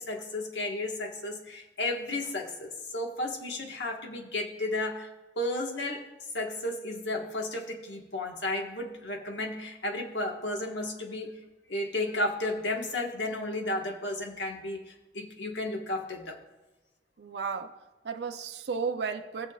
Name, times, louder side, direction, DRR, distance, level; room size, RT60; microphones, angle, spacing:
voice 1, 0.0-5.1 5.4-6.0 6.3-11.3 11.7-16.4, left 2 dB, 75° left, 1 dB, 1.4 m, -33 dB
voice 2, 17.2-17.8 18.0-19.5, right 5 dB, 65° right, 6 dB, 0.6 m, -33 dB
19.0 x 6.8 x 2.4 m, 1.1 s
head